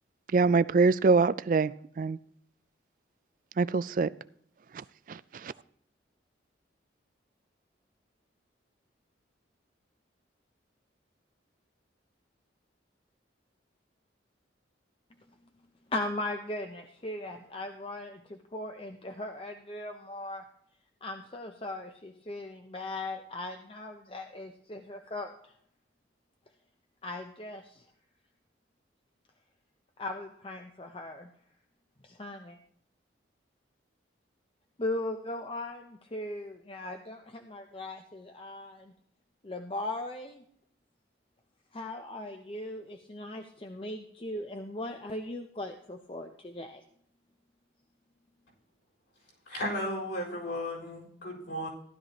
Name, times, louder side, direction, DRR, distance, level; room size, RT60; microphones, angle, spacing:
voice 1, 0.3-2.2 3.6-4.1 5.1-5.5, right 4 dB, 45° right, 0.3 m, -24 dB
voice 2, 15.9-20.4 21.0-25.5 27.0-27.8 30.0-31.3 32.0-32.6 34.8-38.9 39.4-40.4 41.7-46.8, left 2 dB, 30° left, 0.6 m, -38 dB
voice 3, 49.5-51.7, left 1 dB, 65° left, 6.4 m, -34 dB
15.5 x 12.0 x 3.0 m
head